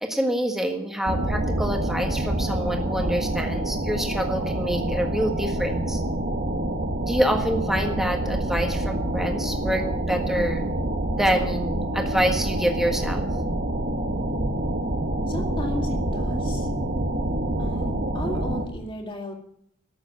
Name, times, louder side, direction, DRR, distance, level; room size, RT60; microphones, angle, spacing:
voice 1, 0.0-6.0 7.1-10.6 11.2-13.3, equal, ahead, 3 dB, 1.6 m, -26 dB
sound 1, 1.0-18.6, right 1 dB, 45° right, 1.4 m, -27 dB
voice 2, 15.3-16.7 17.6-19.3, left 1 dB, 25° left, 3 dB, 2.2 m, -34 dB
13.5 x 7.2 x 9.5 m, 0.69 s
head